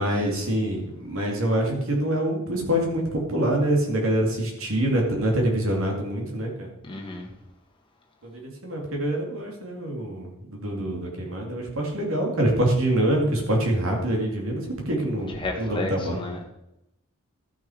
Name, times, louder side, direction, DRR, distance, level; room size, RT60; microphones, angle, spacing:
voice 1, 0.0-6.7 8.2-16.2, right 1 dB, 65° right, 0 dB, 2.8 m, -25 dB
voice 2, 6.8-7.3 15.3-16.4, left 2 dB, 25° left, 0 dB, 1.8 m, -32 dB
13.0 x 6.1 x 5.0 m, 0.88 s
head